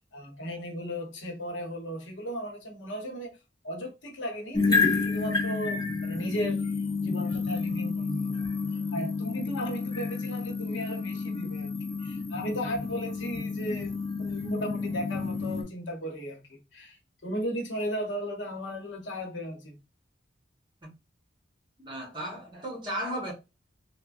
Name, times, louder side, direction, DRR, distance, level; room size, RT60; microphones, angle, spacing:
voice 1, 0.1-3.4 3.6-6.7 7.0-8.6 8.9-11.7 12.0-19.8, equal, 85° left, 0.8 m, -36 dB
sound 1, 4.5-15.6, left 4 dB, 20° left, 0.4 m, -30 dB
voice 2, 21.8-23.3, right 1 dB, 25° right, 1.0 m, -35 dB
3.2 x 2.0 x 2.3 m
head